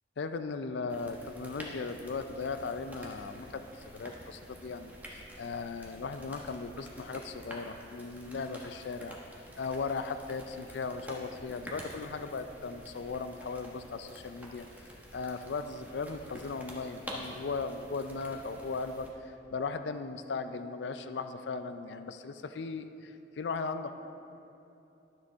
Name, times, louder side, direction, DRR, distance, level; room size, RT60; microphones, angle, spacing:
voice 1, 0.2-9.2 9.6-14.7 15.1-23.9, left 4 dB, 70° left, 9 dB, 0.4 m, -37 dB
sound 1, 0.9-19.1, equal, 10° right, 1.2 m, -48 dB
12.5 x 6.8 x 3.5 m, 3.0 s
head